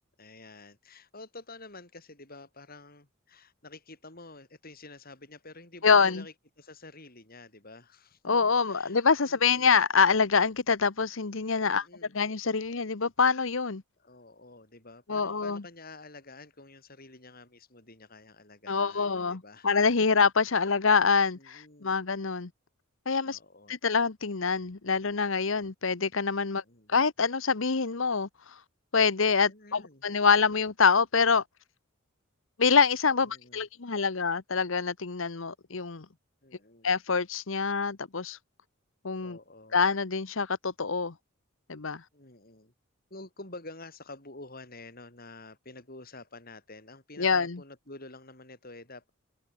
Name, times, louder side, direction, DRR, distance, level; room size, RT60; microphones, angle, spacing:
voice 1, 0.2-9.7 11.6-12.2 14.0-19.7 20.4-20.7 21.3-22.0 23.2-23.7 26.4-26.9 29.4-30.0 33.2-33.6 36.4-36.9 39.2-39.8 42.1-42.7 43.1-49.1, left 2 dB, 45° left, 7.9 m, -49 dB
voice 2, 5.8-6.2 8.2-11.8 12.1-13.8 15.1-15.6 18.7-22.5 23.1-23.4 23.7-26.6 26.9-28.6 28.9-31.4 32.6-36.0 36.8-38.4 39.0-39.4 39.7-41.1 41.7-42.0 47.2-47.6, left 5 dB, 65° left, 1.0 m, -25 dB
head